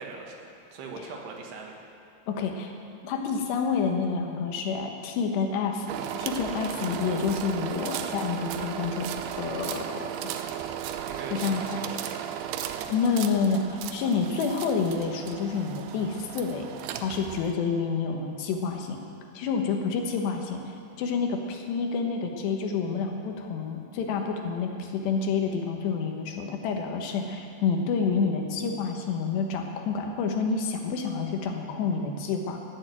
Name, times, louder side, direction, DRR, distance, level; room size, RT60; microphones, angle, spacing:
voice 1, 0.0-1.8 11.1-12.2, right 4 dB, 70° right, 0 dB, 3.3 m, -41 dB
voice 2, 2.3-2.7 3.0-5.9 6.2-9.1 9.4-10.4 11.3-11.8 12.9-16.7 17.0-19.0 19.3-20.6 21.0-32.6, left 5 dB, 75° left, 3 dB, 3.2 m, -28 dB
sound 1, 5.9-17.5, right 10 dB, 85° right, 2.2 m, -35 dB
16.5 x 7.2 x 9.0 m, 2.4 s
omnidirectional pair, 5.3 m